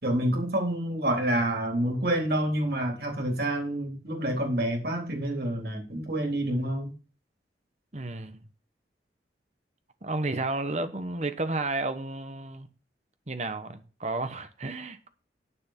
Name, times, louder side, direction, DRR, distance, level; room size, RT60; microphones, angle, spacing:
voice 1, 0.0-6.9, right 1 dB, 55° right, 3.8 m, -28 dB
voice 2, 7.9-8.4 10.0-12.7 13.3-15.1, right 2 dB, 40° right, 1.1 m, -32 dB
9.7 x 6.8 x 5.9 m
head